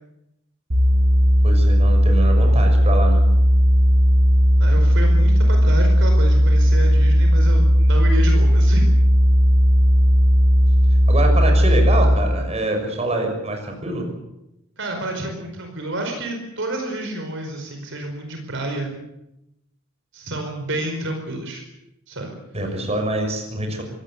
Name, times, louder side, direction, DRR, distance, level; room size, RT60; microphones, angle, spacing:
sound 1, 0.7-12.2, equal, 85° right, 5.3 m, -15 dB
voice 1, 1.4-3.3 11.1-14.1 22.5-23.8, right 2 dB, 30° right, 4 dB, 6.2 m, -25 dB
voice 2, 4.6-8.9 14.8-19.0 20.1-21.6 22.1-22.4, right 1 dB, 60° right, 4 dB, 4.9 m, -29 dB
24.5 x 18.5 x 8.3 m, 0.87 s
head